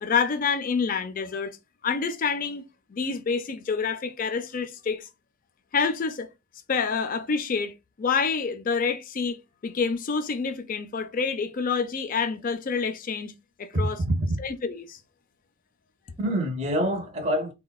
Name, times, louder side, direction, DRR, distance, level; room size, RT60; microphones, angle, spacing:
voice 1, 0.0-1.6 1.8-2.6 2.9-5.1 5.7-6.3 6.7-13.3 13.6-14.0 14.4-15.0, left 5 dB, 40° left, 0.4 m, -27 dB
voice 2, 13.7-14.4 16.2-17.5, equal, 30° right, 0.6 m, -26 dB
3.9 x 2.2 x 2.2 m
head